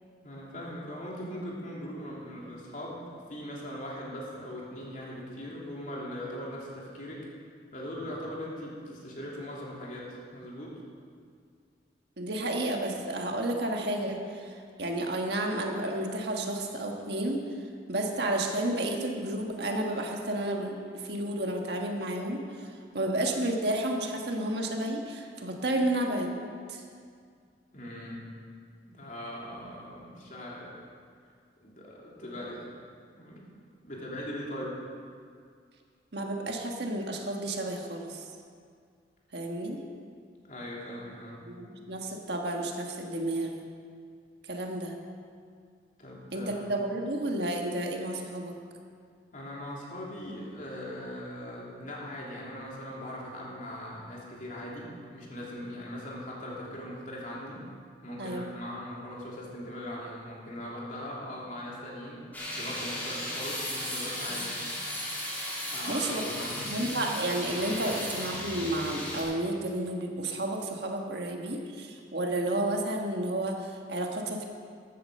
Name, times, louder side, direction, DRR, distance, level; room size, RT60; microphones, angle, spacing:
voice 1, 0.2-7.3 7.7-10.7 27.7-28.2 28.9-30.7 31.6-32.7 33.2-33.5 33.8-34.8 40.5-41.4 46.0-46.7 49.3-57.7 58.0-62.2 62.5-64.6 65.7-66.7 67.8-68.0, equal, 45° left, -4 dB, 3.0 m, -40 dB
voice 2, 12.2-17.4 17.9-22.4 22.9-26.3 26.7-26.8 36.1-38.2 39.3-39.8 41.5-43.6 44.5-44.9 46.3-48.5 58.2-58.5 64.3-64.4 65.6-66.2 66.7-74.4, right 1 dB, 65° right, 2 dB, 1.5 m, -31 dB
sound 1, 62.3-69.2, equal, 10° left, 2.9 m, -35 dB
14.5 x 8.7 x 6.6 m, 2.2 s
head